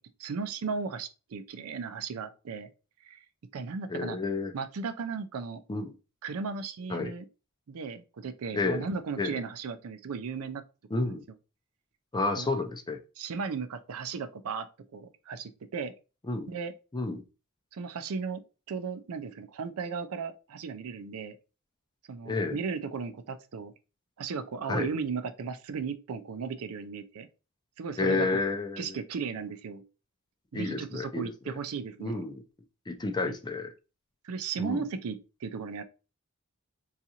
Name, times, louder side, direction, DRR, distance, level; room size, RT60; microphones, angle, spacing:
voice 1, 0.2-2.7 3.0-3.2 3.5-4.2 4.5-5.6 6.2-7.3 7.7-10.6 10.9-11.2 12.4-12.5 13.2-15.9 16.5-16.7 17.7-18.4 18.7-21.4 22.1-23.7 24.2-27.3 27.8-28.3 28.8-29.8 30.5-32.3 33.2-33.3 34.2-35.8, right 5 dB, 70° right, 0.4 m, -36 dB
voice 2, 3.9-4.5 5.7-5.9 6.9-7.1 8.5-8.9 9.2-9.4 10.9-11.2 12.1-13.0 16.3-16.5 16.9-17.2 22.3-22.6 24.7-24.9 28.0-28.9 30.5-31.5 32.0-32.4 32.9-33.7 34.6-34.9, left 3 dB, 20° left, 0.4 m, -30 dB
3.8 x 2.4 x 2.8 m
head